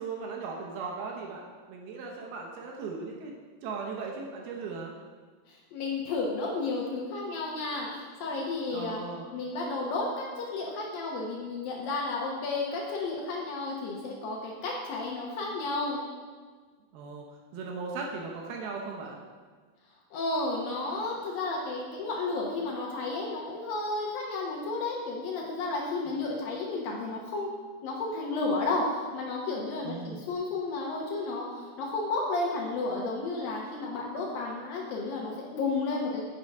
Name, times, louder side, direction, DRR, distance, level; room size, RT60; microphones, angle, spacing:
voice 1, 0.0-3.3 3.6-4.9 8.3-8.4 8.7-9.3 16.9-17.3 17.5-19.2 29.8-30.2, right 4 dB, 75° right, 0 dB, 2.6 m, -38 dB
voice 2, 5.5-9.0 9.3-16.0 20.1-27.5 27.8-36.2, left 3 dB, 70° left, -3 dB, 2.4 m, -32 dB
8.7 x 6.2 x 5.3 m, 1.5 s
omnidirectional pair, 4.9 m